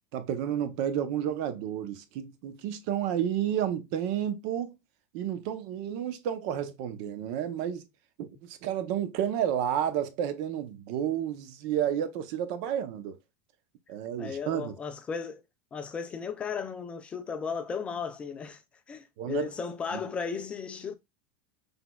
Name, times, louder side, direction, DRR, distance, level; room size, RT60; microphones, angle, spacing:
voice 1, 0.1-4.7 5.1-7.9 8.2-13.2 13.9-14.7 19.2-19.5 19.9-20.0, right 10 dB, 50° right, 0.8 m, -31 dB
voice 2, 14.2-15.4 15.7-18.6 18.9-20.9, left 6 dB, 15° left, 0.4 m, -35 dB
6.0 x 3.5 x 2.3 m
supercardioid pair, 170°, 7 cm